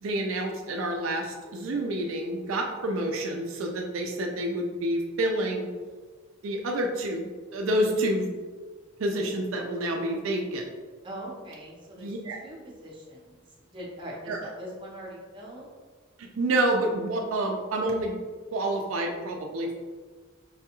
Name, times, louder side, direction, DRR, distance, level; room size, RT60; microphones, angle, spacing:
voice 1, 0.0-5.7 6.4-8.3 9.0-10.6 12.0-12.4 14.3-14.4 16.2-18.1 18.5-19.8, right 1 dB, 75° right, 2 dB, 0.4 m, -28 dB
voice 2, 11.0-15.7, right 1 dB, 25° right, -4 dB, 0.8 m, -42 dB
4.7 x 2.3 x 2.9 m, 1.5 s
head